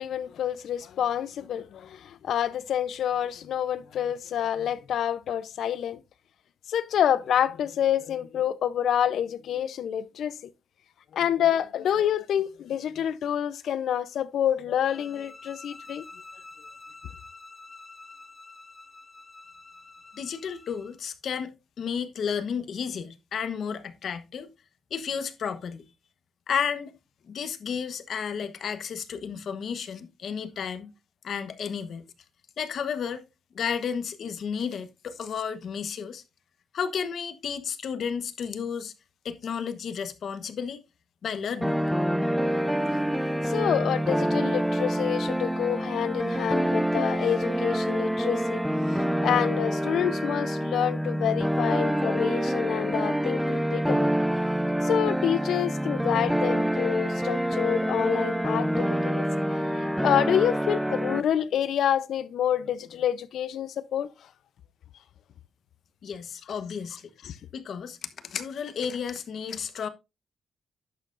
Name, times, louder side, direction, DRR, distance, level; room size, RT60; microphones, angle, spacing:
voice 1, 0.0-6.0 6.7-10.4 11.1-16.0 43.4-48.6 48.9-54.1 54.8-64.1 67.2-67.4, left 9 dB, 80° left, 0.6 m, -28 dB
sound 1, 14.8-21.0, left 3 dB, 25° left, 1.7 m, -48 dB
voice 2, 20.1-24.5 24.9-25.8 26.5-26.9 27.3-30.9 31.2-32.0 32.6-33.2 33.5-36.2 36.7-38.9 39.2-40.8 41.2-41.8 66.0-67.1 67.5-69.9, left 7 dB, 65° left, 1.1 m, -32 dB
sound 2, 41.6-61.2, equal, ahead, 0.5 m, -26 dB
11.0 x 7.6 x 2.5 m
cardioid pair, 120°, 0 cm